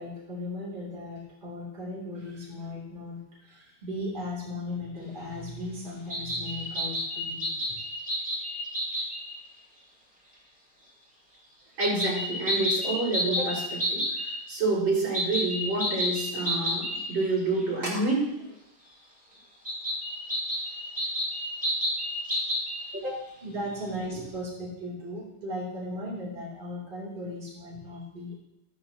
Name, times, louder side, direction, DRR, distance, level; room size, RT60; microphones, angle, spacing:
voice 1, 0.0-7.8 23.4-28.4, left 1 dB, 20° right, -5 dB, 3.4 m, -37 dB
sound 1, 6.1-9.4 11.8-14.3 15.1-17.3 17.6-17.7 19.7-22.9, equal, 5° right, 2.0 m, -30 dB
voice 2, 11.8-18.5 22.2-22.4 22.9-23.3, right 2 dB, 55° right, -6 dB, 5.9 m, -28 dB
13.5 x 13.0 x 2.9 m, 0.83 s
omnidirectional pair, 2.4 m